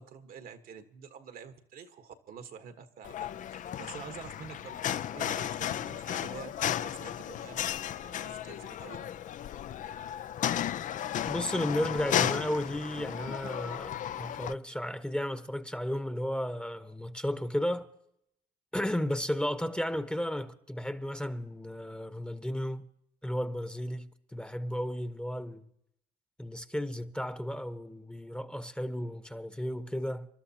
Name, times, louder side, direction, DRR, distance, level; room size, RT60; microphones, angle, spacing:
voice 1, 0.0-9.1, right 7 dB, 65° right, 1.4 m, -48 dB
sound 1, 3.0-14.5, left 10 dB, 55° left, 0.5 m, -34 dB
voice 2, 11.3-17.9 18.7-22.8 23.2-25.7 26.4-30.3, equal, 5° left, 1.0 m, -34 dB
27.5 x 12.5 x 2.9 m
supercardioid pair, 70°, 16 cm